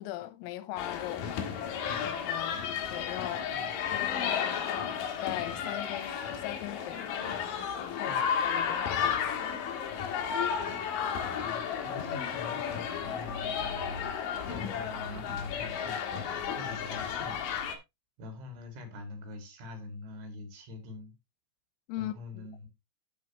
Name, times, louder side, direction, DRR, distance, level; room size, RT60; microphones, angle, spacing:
voice 1, 0.0-1.5 2.0-3.5 3.9-7.3 7.8-9.6 21.9-22.4, left 15 dB, 90° left, 3.6 m, -40 dB
sound 1, 0.8-17.8, left 7 dB, 70° left, 2.1 m, -33 dB
voice 2, 11.4-16.0 16.5-17.7 18.2-21.1 22.0-22.7, left 3 dB, 70° right, 4.6 m, -44 dB
15.0 x 5.1 x 3.0 m
omnidirectional pair, 5.9 m